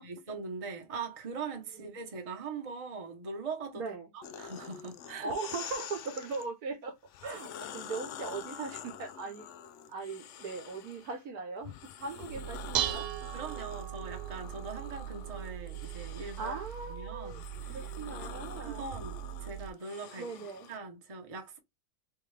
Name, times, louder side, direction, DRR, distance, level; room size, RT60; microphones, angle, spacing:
voice 1, 0.0-3.8 4.1-5.4 12.4-12.5 13.3-16.6 16.9-17.8 18.6-21.6, right 4 dB, 25° right, 0.8 m, -41 dB
voice 2, 3.7-4.1 5.2-6.9 7.2-9.5 9.9-13.1 16.4-17.4 17.7-18.8 20.2-20.7, right 4 dB, 60° right, 1.3 m, -39 dB
sound 1, 4.2-6.5 7.1-11.2 11.6-20.8, left 9 dB, 85° left, 0.6 m, -47 dB
Dishes pots and pans, 12.3-19.7, right 13 dB, 90° right, 1.3 m, -39 dB
4.3 x 3.6 x 3.2 m
omnidirectional pair, 1.9 m